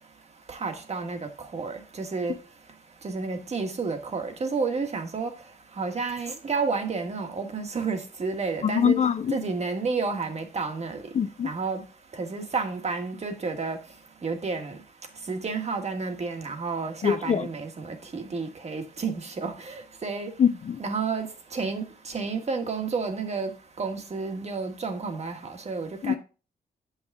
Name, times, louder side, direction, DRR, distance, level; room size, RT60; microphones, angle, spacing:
voice 1, 0.5-2.3 3.0-5.3 5.8-9.0 9.3-11.0 11.4-11.8 12.2-13.8 14.2-14.7 15.3-20.3 20.8-21.3 21.5-23.5 23.8-25.4 25.7-26.2, right 4 dB, 40° right, 1.4 m, -30 dB
voice 2, 8.6-9.4 11.1-11.5 17.0-17.5 20.4-20.8 26.0-26.1, left 7 dB, 45° left, 0.5 m, -23 dB
7.8 x 5.8 x 3.5 m
wide cardioid pair, 115°, 17 cm